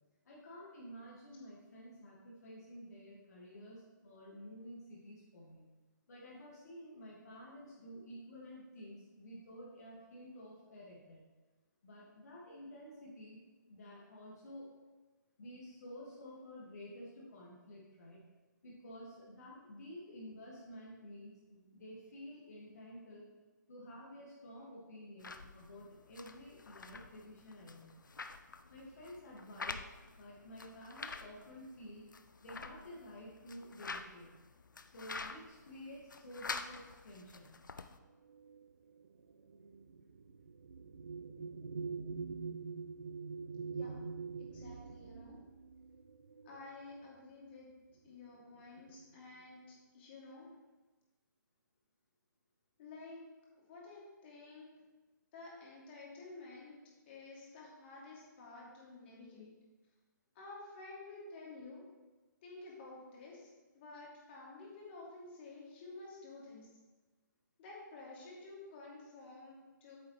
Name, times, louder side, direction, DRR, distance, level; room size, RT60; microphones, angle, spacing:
voice 1, 0.2-5.6 6.1-11.2 11.8-13.4 13.7-14.7 15.4-18.2 18.6-23.3 23.7-27.9 28.7-29.8 30.2-32.1 32.4-34.3 34.9-37.6, equal, 55° left, -6 dB, 2.1 m, -51 dB
sound 1, 25.2-38.0, left 4 dB, 75° left, 0.5 m, -48 dB
sound 2, 38.3-47.2 48.1-48.3 48.6-49.2, right 5 dB, 60° right, 0.6 m, -45 dB
voice 2, 44.4-45.4 46.4-47.7 48.0-50.5 52.8-53.2 53.7-54.7 55.3-56.7 57.1-59.5 60.3-61.8 62.4-63.5 63.7-66.7 67.6-70.0, left 3 dB, 35° left, -4 dB, 2.7 m, -51 dB
8.7 x 7.2 x 3.2 m, 1.2 s
figure-of-eight pair, 135°, 10 cm